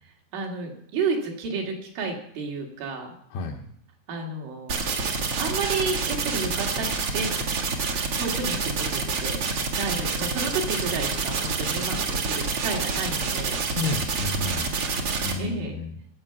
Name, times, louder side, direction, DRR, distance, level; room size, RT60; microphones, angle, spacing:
voice 1, 0.3-3.1 4.1-4.9 5.4-7.3 8.2-9.4 9.8-13.6 15.4-15.8, right 4 dB, 75° right, 0 dB, 4.8 m, -31 dB
voice 2, 3.3-3.7 13.7-14.8 15.2-16.0, left 3 dB, 75° left, 3 dB, 2.4 m, -31 dB
sound 1, 4.7-15.3, right 4 dB, 55° right, 1.7 m, -27 dB
21.0 x 8.2 x 6.0 m, 0.69 s
omnidirectional pair, 5.6 m